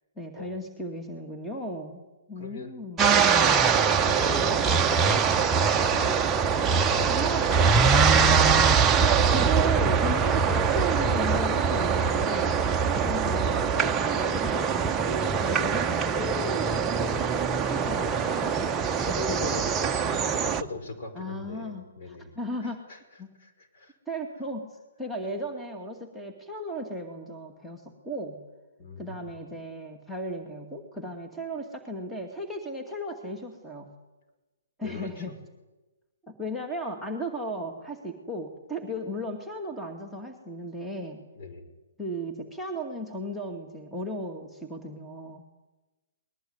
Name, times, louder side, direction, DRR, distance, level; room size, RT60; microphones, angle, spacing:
voice 1, 0.2-3.2 7.1-7.5 9.3-18.7 19.3-19.6 21.1-22.9 23.2-23.3 24.1-28.4 29.0-33.9 34.8-35.4 36.2-41.2 42.0-45.4, right 1 dB, 5° left, 3 dB, 2.2 m, -36 dB
voice 2, 2.4-2.7 3.1-6.2 6.6-8.4 12.8-13.2 17.8-22.3 22.6-23.0 23.4-23.9 28.8-29.3 34.8-35.2 41.3-41.7, left 2 dB, 45° left, 5 dB, 5.5 m, -40 dB
sound 1, 3.0-20.6, right 6 dB, 15° right, 1.0 m, -23 dB
20.5 x 20.5 x 9.6 m, 1.1 s
hypercardioid pair, 135°, 0 cm